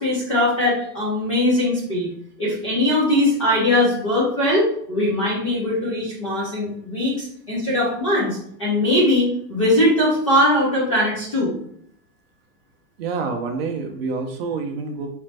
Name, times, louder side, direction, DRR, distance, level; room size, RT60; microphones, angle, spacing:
voice 1, 0.0-2.1 2.4-11.5, left 1 dB, 25° left, -6 dB, 0.3 m, -20 dB
voice 2, 13.0-15.1, right 4 dB, 45° right, 3 dB, 0.4 m, -27 dB
4.2 x 2.5 x 3.2 m, 0.68 s
supercardioid pair, 165°, 47 cm